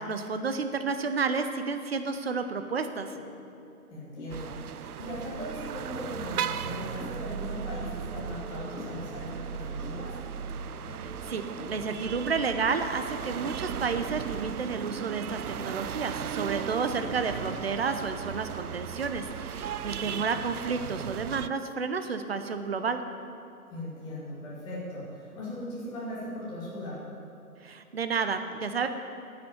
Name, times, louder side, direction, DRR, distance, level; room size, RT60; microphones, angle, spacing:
voice 1, 0.1-3.1 10.8-23.0 27.6-28.9, right 5 dB, 40° right, 8 dB, 0.9 m, -31 dB
sound 1, 3.1-3.3 3.6-3.8 4.2-14.4, left 3 dB, 80° left, 2.8 m, -47 dB
voice 2, 3.9-10.2 20.0-20.3 23.7-27.0, left 1 dB, 10° left, -9 dB, 2.4 m, -39 dB
sound 2, 4.3-21.5, right 8 dB, 75° right, 0.6 m, -36 dB
10.5 x 8.3 x 9.0 m, 2.7 s
hypercardioid pair, 165°, 45 cm